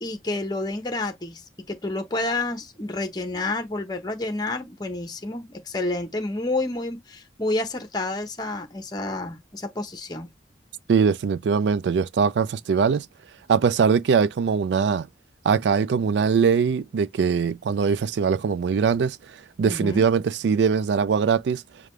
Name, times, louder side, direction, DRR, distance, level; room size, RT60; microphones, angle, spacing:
voice 1, 0.0-10.3 19.6-20.1, left 2 dB, 20° left, 0.8 m, -29 dB
voice 2, 10.9-13.1 13.5-15.1 15.4-19.2 19.6-21.6, right 6 dB, 70° right, 0.3 m, -21 dB
5.0 x 2.3 x 3.1 m
head